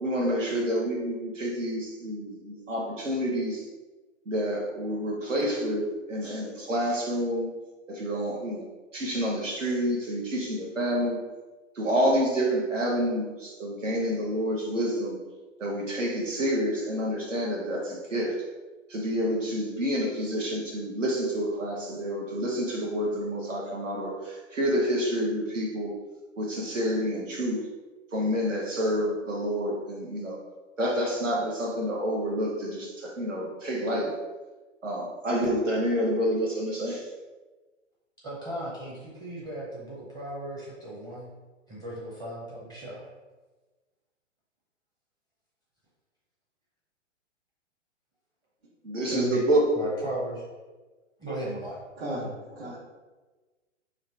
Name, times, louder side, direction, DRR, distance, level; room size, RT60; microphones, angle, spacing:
voice 1, 0.0-3.7 4.3-7.5 7.9-11.2 11.7-15.2 15.6-18.4 18.9-25.9 26.4-27.6 28.1-30.4 30.8-34.1 34.8-37.1 48.8-49.8, equal, 80° right, -3 dB, 1.2 m, -28 dB
voice 2, 38.2-41.4 41.7-43.1 49.8-50.4 51.2-51.8, right 1 dB, 15° right, -7 dB, 0.7 m, -36 dB
voice 3, 52.0-52.8, right 1 dB, 50° right, -8 dB, 1.4 m, -34 dB
4.9 x 2.6 x 3.4 m, 1.2 s
figure-of-eight pair, 115°, 37 cm